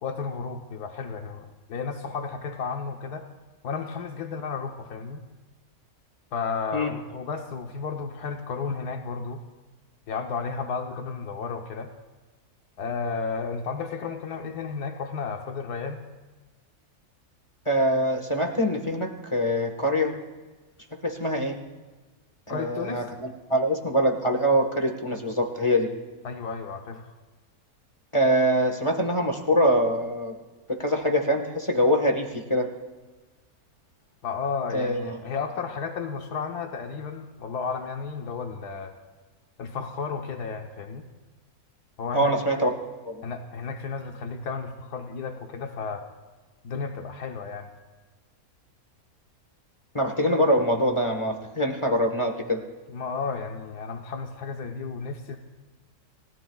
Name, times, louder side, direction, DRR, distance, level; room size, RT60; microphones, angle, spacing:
voice 1, 0.0-3.3 3.6-5.2 6.3-9.4 10.1-11.9 12.8-16.0 22.5-23.0 26.2-27.1 34.2-38.9 39.6-41.0 42.0-42.3 43.2-46.0 46.6-47.7 52.9-55.4, left 5 dB, 90° left, 4 dB, 1.6 m, -33 dB
voice 2, 17.6-20.1 21.0-21.6 22.5-25.9 28.1-30.3 30.7-32.7 34.7-35.1 42.1-42.7 43.0-43.2 49.9-52.6, equal, 20° left, 3 dB, 1.4 m, -24 dB
29.5 x 17.5 x 2.4 m, 1.3 s
omnidirectional pair, 1.6 m